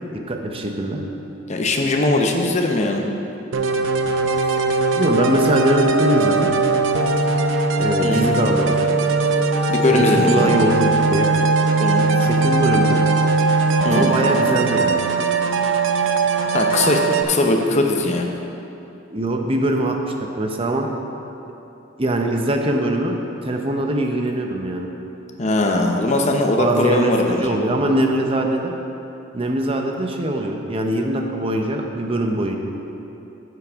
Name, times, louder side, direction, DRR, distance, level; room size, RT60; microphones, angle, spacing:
voice 1, 0.1-1.0 4.9-6.5 7.8-9.0 9.9-11.3 12.2-13.1 13.9-15.0 19.1-20.9 22.0-24.9 26.6-28.7 29.3-32.6, right 1 dB, 30° right, 3 dB, 0.7 m, -22 dB
voice 2, 1.5-3.0 8.0-8.3 9.7-10.6 11.8-12.1 13.8-14.2 16.5-17.0 17.3-18.3 25.4-27.6, left 2 dB, 35° left, 3 dB, 0.7 m, -20 dB
sound 1, 3.5-17.2, right 3 dB, 80° right, 0.6 m, -19 dB
10.0 x 7.8 x 3.5 m, 2.9 s
head